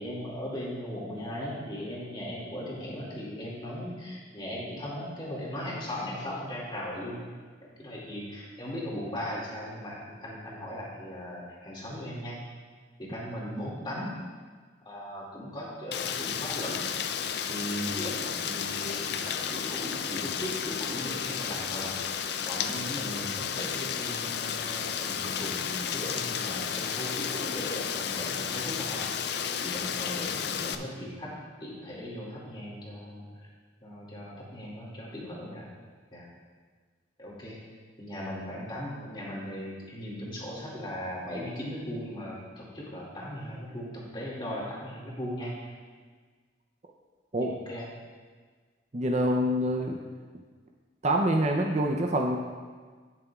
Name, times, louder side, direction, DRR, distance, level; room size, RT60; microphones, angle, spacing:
voice 1, 0.0-7.2 7.8-12.4 13.0-14.1 14.8-16.9 17.5-22.0 22.4-29.0 29.5-31.3 31.6-33.3 33.8-35.7 36.1-36.3 37.2-37.6 38.0-45.7 47.4-47.9, equal, 25° left, -5 dB, 2.2 m, -38 dB
Rain, 15.9-30.7, left 7 dB, 55° left, 0.4 m, -32 dB
voice 2, 48.9-50.0 51.0-52.4, right 1 dB, 35° right, 2 dB, 0.5 m, -26 dB
17.0 x 6.8 x 2.4 m, 1.5 s
head